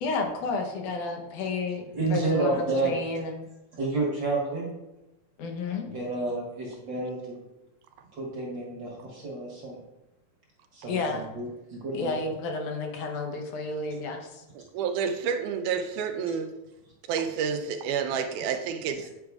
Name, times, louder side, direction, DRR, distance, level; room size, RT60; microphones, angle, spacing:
voice 1, 0.0-1.8 2.1-3.5 5.4-5.9 10.9-11.3 11.9-14.4, left 3 dB, 80° left, 2 dB, 2.3 m, -31 dB
voice 2, 1.9-3.0 3.7-4.7 5.6-7.4 8.1-9.8 10.7-12.1, right 3 dB, 50° right, -3 dB, 1.5 m, -30 dB
voice 3, 14.6-16.5 17.1-19.1, right 6 dB, 85° right, 7 dB, 2.1 m, -29 dB
9.7 x 5.0 x 2.3 m, 0.97 s
omnidirectional pair, 3.5 m